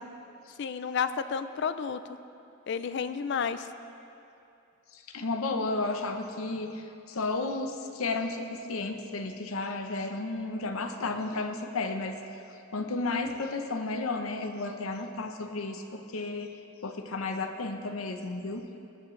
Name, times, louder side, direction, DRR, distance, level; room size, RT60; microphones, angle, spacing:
voice 1, 0.6-2.0 2.7-3.7, left 6 dB, 55° left, 12 dB, 0.4 m, -31 dB
voice 2, 4.9-12.2 12.7-18.8, left 3 dB, 85° left, 6 dB, 0.8 m, -33 dB
18.0 x 8.0 x 3.2 m, 2.7 s
head